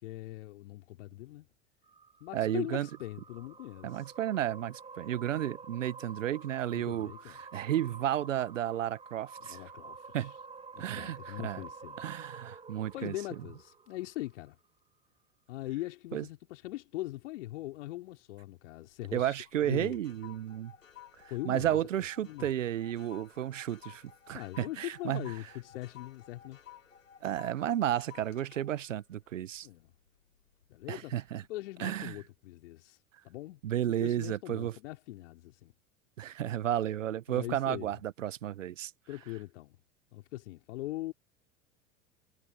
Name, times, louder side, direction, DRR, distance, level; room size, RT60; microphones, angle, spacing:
voice 1, 0.0-1.5 2.2-4.1 6.7-7.4 9.4-10.3 10.7-12.4 12.9-14.6 15.5-19.4 19.6-20.0 21.3-21.8 22.2-22.5 24.3-26.6 29.6-29.9 30.7-31.1 31.5-33.0 33.2-33.6 33.9-35.7 37.3-38.0 39.1-39.8 40.1-41.1, left 17 dB, 65° left, 3.8 m, -41 dB
sound 1, 1.8-14.3, right 5 dB, 15° right, 1.6 m, -49 dB
voice 2, 2.3-2.9 3.8-7.1 7.4-9.6 10.1-10.3 10.8-11.6 12.0-13.1 16.1-16.2 19.1-20.7 21.4-25.3 27.2-29.7 30.9-31.4 31.8-32.2 33.6-34.8 36.2-38.9, right 11 dB, 75° right, 1.2 m, -32 dB
sound 2, 18.7-19.2 19.5-30.1 30.5-30.8, left 10 dB, 80° left, 3.8 m, -55 dB
figure-of-eight pair, 80°, 38 cm